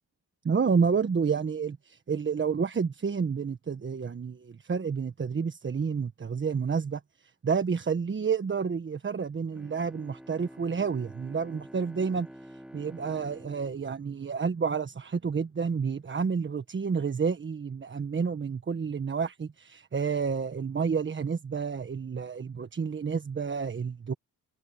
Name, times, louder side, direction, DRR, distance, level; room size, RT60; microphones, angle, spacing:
voice 1, 0.4-7.0 7.4-24.1, right 5 dB, 35° right, 1.4 m, -30 dB
Bowed string instrument, 9.5-15.1, equal, 5° right, 1.5 m, -49 dB
cardioid pair, 80°, 34 cm